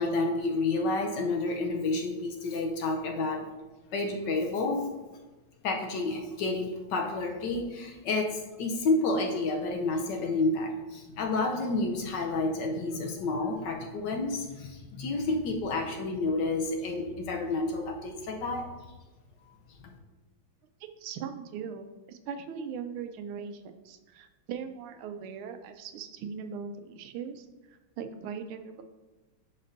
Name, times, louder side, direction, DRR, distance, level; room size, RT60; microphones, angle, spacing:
voice 1, 0.0-3.5 3.9-4.9 5.6-18.7 19.8-19.9, left 2 dB, 70° left, 2 dB, 1.2 m, -30 dB
voice 2, 20.8-28.8, right 6 dB, 90° right, 8 dB, 1.5 m, -40 dB
10.5 x 4.3 x 2.6 m, 1.2 s
omnidirectional pair, 2.3 m